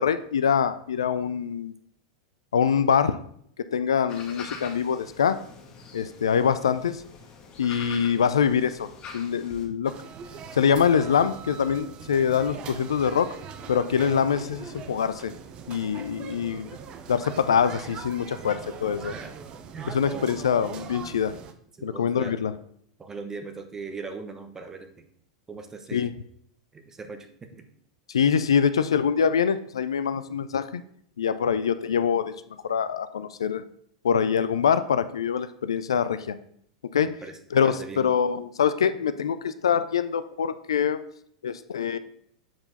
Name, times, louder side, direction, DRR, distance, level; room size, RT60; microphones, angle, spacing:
voice 1, 0.0-1.7 2.5-3.2 3.7-5.4 5.9-7.0 7.6-8.9 9.1-9.9 10.5-13.3 13.7-15.3 15.7-16.7 17.1-19.1 19.9-21.3 21.8-22.5 25.9-26.1 28.1-30.8 31.2-32.3 32.6-33.6 34.0-36.4 36.9-37.1 37.5-41.0 41.4-42.0, left 7 dB, 75° left, 12 dB, 0.4 m, -24 dB
sound 1, 4.1-9.7, left 5 dB, 35° left, 1.4 m, -44 dB
sound 2, 9.8-21.5, right 6 dB, 35° right, 0.7 m, -41 dB
voice 2, 19.0-19.4 19.7-20.3 21.7-22.4 23.0-25.1 25.5-26.1 26.7-27.3 27.5-27.7 37.0-38.1, right 4 dB, 20° right, 6 dB, 1.0 m, -40 dB
7.6 x 4.5 x 4.0 m, 0.66 s
figure-of-eight pair, 90°, 3 cm